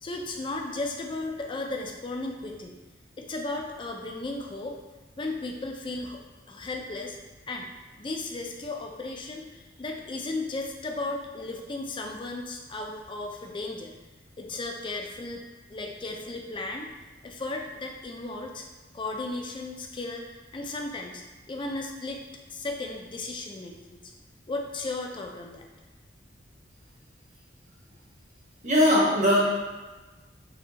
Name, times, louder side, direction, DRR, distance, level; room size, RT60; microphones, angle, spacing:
voice 1, 0.0-2.8 3.2-4.8 5.2-6.2 6.5-7.2 7.5-7.7 8.0-13.9 14.4-15.4 15.7-16.9 17.2-18.7 18.9-20.2 20.5-22.2 22.5-24.1 24.5-25.6, left 2 dB, 25° left, 2 dB, 0.4 m, -35 dB
voice 2, 28.6-29.4, left 1 dB, 40° right, -5 dB, 1.0 m, -20 dB
4.9 x 2.3 x 2.8 m, 1.2 s
head